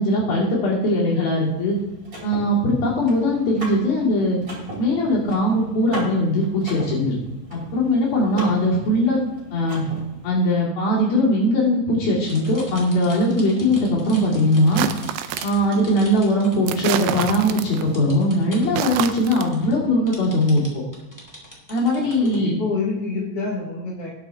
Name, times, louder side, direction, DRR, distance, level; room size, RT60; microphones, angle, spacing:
voice 1, 0.0-1.8 2.2-4.4 4.8-7.2 7.5-9.2 9.5-9.8 10.2-14.9 15.4-20.8 21.7-22.6, left 1 dB, 55° left, -5 dB, 4.1 m, -20 dB
Car / Mechanisms, 1.4-10.3, right 1 dB, 20° right, 2.9 m, -37 dB
sound 1, 12.2-17.2 17.5-18.7 19.0-19.1 19.4-22.4, equal, 15° left, 0.7 m, -42 dB
sound 2, 14.7-15.7 16.7-17.9 18.6-19.5, right 11 dB, 85° right, 3.1 m, -27 dB
voice 2, 22.0-24.1, left 4 dB, 80° left, -3 dB, 1.3 m, -28 dB
19.0 x 6.6 x 3.5 m, 1.0 s
omnidirectional pair, 5.4 m